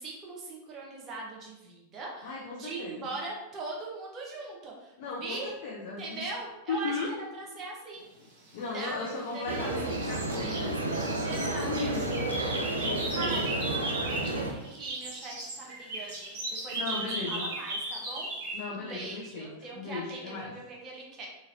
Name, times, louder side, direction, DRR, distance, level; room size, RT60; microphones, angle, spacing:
voice 1, 0.0-5.5 6.0-6.9 7.3-8.1 8.7-9.0 9.3-11.7 12.6-13.6 14.1-17.0 17.3-18.3 18.7-21.3, right 3 dB, 30° right, -3 dB, 0.8 m, -41 dB
voice 2, 2.2-3.1 5.0-6.2 6.7-7.1 7.5-7.6 8.5-10.7 11.6-12.1 12.8-13.4 16.7-17.5 18.5-20.5, left 4 dB, 55° left, -3 dB, 0.5 m, -36 dB
sound 1, 8.7-9.5 9.9-14.4 14.6-18.6, right 2 dB, 55° right, 1.1 m, -36 dB
sound 2, 9.5-14.5, right 2 dB, 85° right, 0.4 m, -31 dB
3.0 x 2.5 x 2.7 m, 0.94 s
figure-of-eight pair, 90°, 0 cm